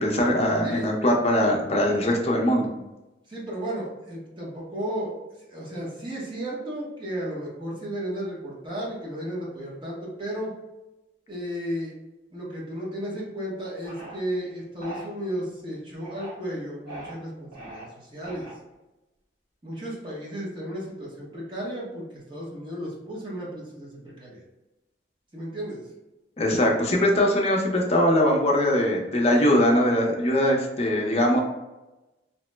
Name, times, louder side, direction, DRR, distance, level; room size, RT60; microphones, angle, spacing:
voice 1, 0.0-2.7 26.4-31.4, left 1 dB, 35° left, 0 dB, 0.5 m, -21 dB
voice 2, 0.6-0.9 3.3-5.1 5.5-10.5 11.3-11.9 12.3-18.5 19.6-24.4 25.3-25.8, equal, 25° right, -6 dB, 0.8 m, -34 dB
sound 1, 13.8-14.2 14.8-15.1 15.9-16.4 16.9-17.1 17.5-17.8 18.2-18.7, right 2 dB, 55° right, 1.2 m, -40 dB
2.9 x 2.0 x 3.2 m, 1.0 s
head